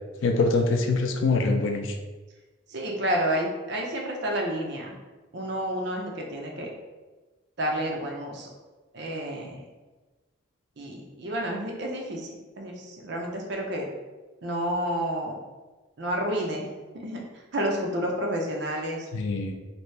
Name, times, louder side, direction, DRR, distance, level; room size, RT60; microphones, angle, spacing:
voice 1, 0.2-1.9 19.1-19.6, left 3 dB, 70° left, 5 dB, 0.4 m, -24 dB
voice 2, 2.7-5.0 5.3-6.7 7.6-8.5 8.9-9.6 10.8-13.9 14.4-15.4 16.0-17.2 17.5-19.1, equal, 55° right, 0 dB, 0.6 m, -30 dB
2.9 x 2.7 x 3.2 m, 1.2 s
head